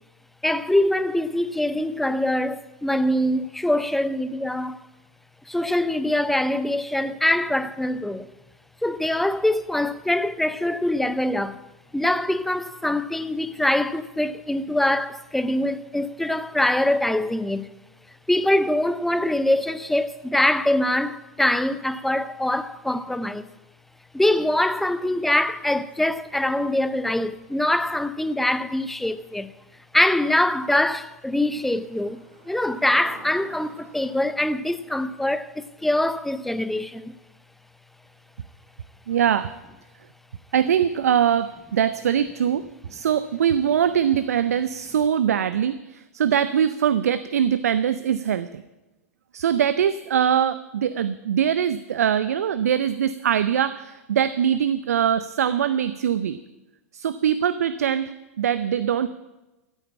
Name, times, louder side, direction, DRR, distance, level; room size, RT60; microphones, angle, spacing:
voice 1, 0.4-4.8 5.5-8.3 8.8-11.6 11.9-17.7 18.3-23.5 24.1-29.5 29.9-37.2, left 1 dB, 5° left, 0.6 m, -23 dB
sound 1, 24.6-26.1 29.6-29.7 30.2-30.3 30.5-34.3, right 2 dB, 20° right, 3.0 m, -49 dB
voice 2, 39.1-39.5 40.5-42.7 42.9-48.6 49.3-56.4 56.9-58.1 58.4-59.1, right 9 dB, 75° right, 0.5 m, -22 dB
14.0 x 8.9 x 8.6 m
hypercardioid pair, 105°, 8 cm